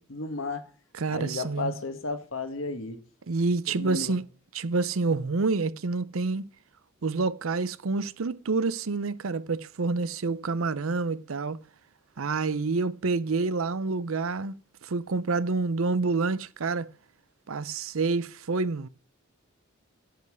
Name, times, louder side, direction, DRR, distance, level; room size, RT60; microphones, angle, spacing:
voice 1, 0.1-0.7 1.1-3.0 3.7-4.2, left 3 dB, 65° left, 1.6 m, -33 dB
voice 2, 0.9-1.7 3.3-4.2 4.5-6.4 7.0-11.6 12.2-14.5 14.8-16.9 17.5-18.9, right 3 dB, 75° right, 0.6 m, -28 dB
10.0 x 5.5 x 7.7 m
head